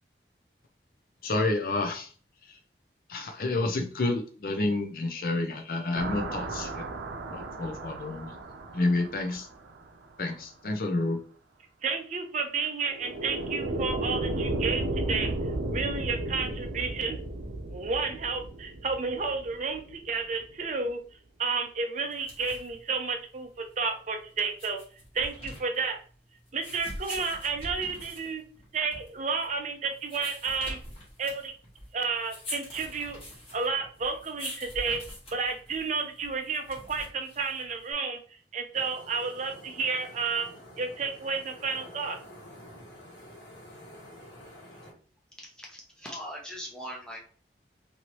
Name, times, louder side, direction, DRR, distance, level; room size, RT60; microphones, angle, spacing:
voice 1, 1.2-2.1 3.1-6.8 7.3-8.4 8.7-9.5 10.2-11.2, left 2 dB, 50° left, 5 dB, 0.4 m, -29 dB
sound 1, 5.9-9.9 12.9-20.0, right 2 dB, 85° right, 0.6 m, -34 dB
voice 2, 11.8-15.3 15.7-17.2 17.7-21.0 21.4-24.8 25.1-26.0 26.5-28.4 28.7-30.8 31.2-31.5 31.9-33.2 33.5-35.0 35.3-38.2 38.5-40.5 40.8-42.2, right 4 dB, 40° right, 4 dB, 0.5 m, -31 dB
sound 2, 22.0-37.9, left 1 dB, 30° left, 1.2 m, -44 dB
sound 3, 38.7-44.9, equal, 90° left, 1.2 m, -49 dB
voice 3, 45.4-47.2, equal, 5° left, -2 dB, 0.7 m, -41 dB
3.0 x 2.7 x 2.9 m, 0.42 s
head